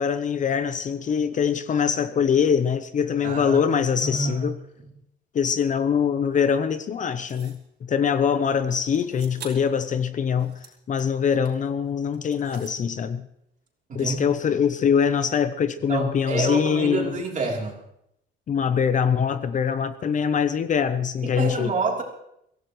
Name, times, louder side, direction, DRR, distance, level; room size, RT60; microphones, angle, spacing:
voice 1, 0.0-4.6 5.3-13.3 13.9-17.2 18.5-21.7, left 7 dB, 40° left, 0.7 m, -23 dB
voice 2, 3.2-4.5 13.9-14.2 15.9-17.8 21.2-22.0, right 3 dB, 40° right, 3.4 m, -28 dB
sound 1, 7.3-7.7 8.9-9.8 10.2-11.7 12.1-12.8, right 6 dB, 60° right, 4.0 m, -45 dB
24.0 x 16.0 x 3.1 m
cardioid pair, 160°, 20 cm